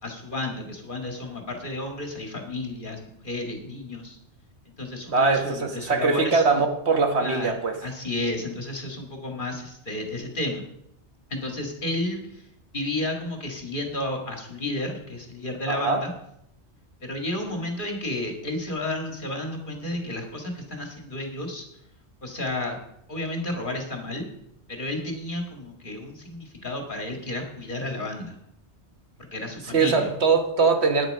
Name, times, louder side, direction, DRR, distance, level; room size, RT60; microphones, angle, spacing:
voice 1, 0.0-4.2 4.8-6.4 7.2-7.5 7.8-10.6 11.3-12.4 12.7-16.1 17.0-21.6 22.2-22.8 23.1-24.3 24.7-28.4 29.3-30.1, left 1 dB, 45° left, 2 dB, 2.2 m, -32 dB
voice 2, 5.1-7.7 15.7-16.0 29.6-31.1, right 4 dB, 70° right, 5 dB, 1.6 m, -22 dB
11.0 x 9.7 x 5.4 m, 0.77 s
omnidirectional pair, 1.2 m